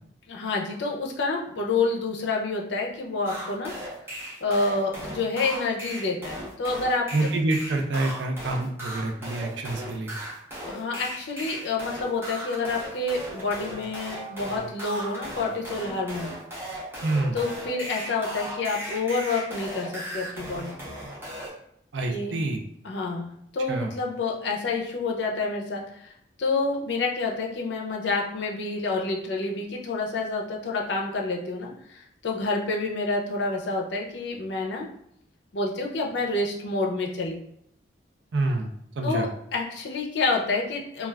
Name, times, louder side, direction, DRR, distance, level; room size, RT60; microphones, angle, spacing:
voice 1, 0.3-3.7 4.4-7.3 10.7-16.3 17.3-21.0 22.1-22.3 22.8-26.1 26.4-34.9 35.5-37.4 39.0-41.1, left 3 dB, 75° left, 0 dB, 0.5 m, -28 dB
sound 1, 3.2-21.5, right 1 dB, 15° right, 0.7 m, -37 dB
voice 2, 7.1-10.1 17.0-17.4 21.9-22.6 23.7-23.9 38.3-38.7 39.0-39.3, right 2 dB, 75° right, 3 dB, 0.5 m, -27 dB
2.3 x 2.3 x 3.2 m, 0.72 s
head